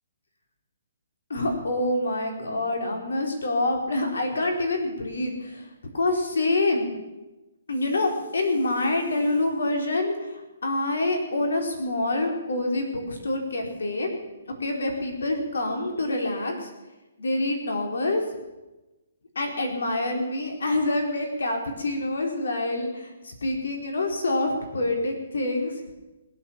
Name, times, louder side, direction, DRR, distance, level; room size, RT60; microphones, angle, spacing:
voice 1, 1.3-5.7 5.9-6.9 7.7-14.1 14.6-16.7 17.2-18.2 19.3-25.8, left 2 dB, 85° left, 3 dB, 4.3 m, -26 dB
20.5 x 8.8 x 7.4 m, 1.1 s
hypercardioid pair, 170°, 0 cm